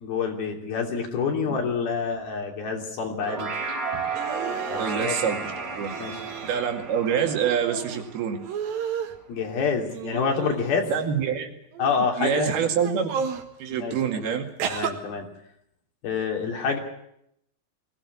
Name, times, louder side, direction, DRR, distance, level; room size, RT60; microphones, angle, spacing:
voice 1, 0.0-3.5 4.7-5.4 6.0-6.2 9.3-10.9 11.8-12.7 13.8-14.4 14.7-15.3 16.0-16.8, left 5 dB, 80° left, 2 dB, 5.0 m, -27 dB
sound 1, 3.1-8.6, right 5 dB, 45° right, 4.8 m, -33 dB
sound 2, 4.1-4.9 5.8-6.6 6.9-8.0 8.4-9.2 9.9-11.0 11.7-12.1 12.8-13.5 14.6-14.9, right 7 dB, 70° right, 3.4 m, -33 dB
voice 2, 4.8-6.0 6.4-8.4 10.9-11.5 12.1-13.3 13.6-14.4, right 8 dB, 90° right, 4 dB, 4.2 m, -26 dB
22.0 x 16.5 x 9.8 m, 0.77 s
omnidirectional pair, 4.3 m